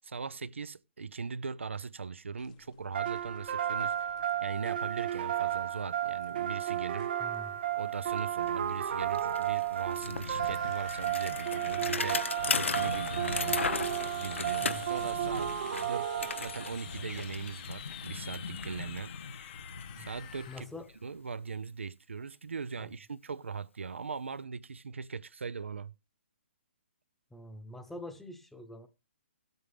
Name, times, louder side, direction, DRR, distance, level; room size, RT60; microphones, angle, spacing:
voice 1, 0.0-4.1 4.4-7.1 7.8-13.6 14.2-15.5 15.8-16.1 16.4-19.1 20.0-20.7 21.0-25.9, right 5 dB, 85° right, 0.5 m, -40 dB
sound 1, 2.4-20.6, left 11 dB, 40° left, 1.0 m, -50 dB
sound 2, 2.9-16.8, right 11 dB, 50° right, 1.1 m, -33 dB
voice 2, 7.2-7.6 14.6-14.9 20.0-20.1 20.5-20.9 22.8-22.9 27.3-28.9, left 1 dB, 5° left, 1.0 m, -45 dB
Bicycle, 7.7-7.8 8.0-21.0, left 4 dB, 85° left, 1.0 m, -37 dB
16.5 x 8.0 x 3.4 m
hypercardioid pair, 140°, 6 cm